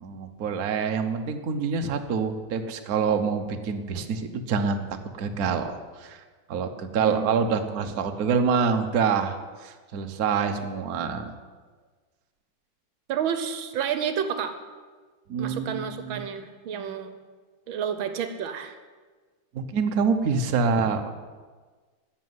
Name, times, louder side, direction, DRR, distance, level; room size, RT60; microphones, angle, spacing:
voice 1, 0.0-6.2 6.5-11.3 15.3-16.2 19.5-21.1, right 5 dB, 55° right, 6 dB, 1.3 m, -26 dB
voice 2, 7.0-7.4 13.1-14.6 15.4-17.1 17.7-18.8, right 8 dB, 80° right, 9 dB, 1.7 m, -30 dB
13.5 x 7.3 x 9.5 m, 1.4 s
omnidirectional pair, 2.2 m